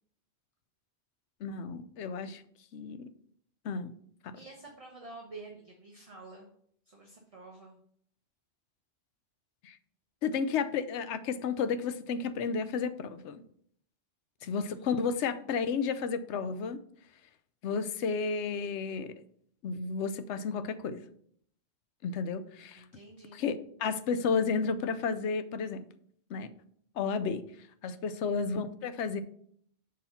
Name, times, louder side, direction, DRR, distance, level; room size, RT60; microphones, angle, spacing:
voice 1, 1.4-2.4 2.7-3.1 3.6-3.9 4.2-4.4 9.6-9.8 10.2-13.4 14.4-16.8 17.6-19.1 19.6-21.1 22.0-22.9 23.3-25.9 26.3-26.5 26.9-29.2, left 5 dB, 85° left, 11 dB, 0.9 m, -32 dB
voice 2, 4.3-6.5 6.9-7.8 14.4-15.1 22.7-23.4 27.9-28.0, right 3 dB, 35° right, 0 dB, 0.9 m, -49 dB
6.3 x 4.2 x 5.6 m, 0.65 s
omnidirectional pair, 1.2 m